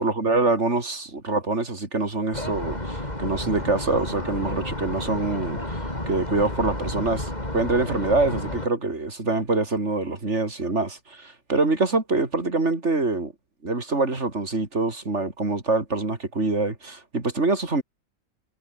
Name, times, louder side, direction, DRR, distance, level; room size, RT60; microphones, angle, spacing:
voice 1, 0.0-7.2 7.5-13.3 13.6-17.8, right 3 dB, 55° right, 3.9 m, -25 dB
sound 1, 2.3-8.7, left 1 dB, 30° left, 6.0 m, -31 dB
omnidirectional pair, 1.5 m